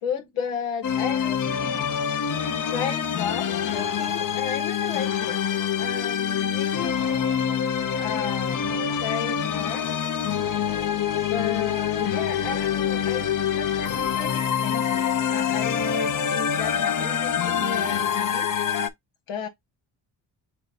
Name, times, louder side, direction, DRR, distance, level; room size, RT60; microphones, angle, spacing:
voice 1, 0.0-1.4 2.6-5.4 5.8-9.9 11.2-18.5 19.3-19.5, left 7 dB, 85° left, 1.2 m, -34 dB
sound 1, 0.8-18.9, left 8 dB, 40° left, 0.8 m, -25 dB
6.0 x 2.2 x 4.0 m
cardioid pair, 75°, 48 cm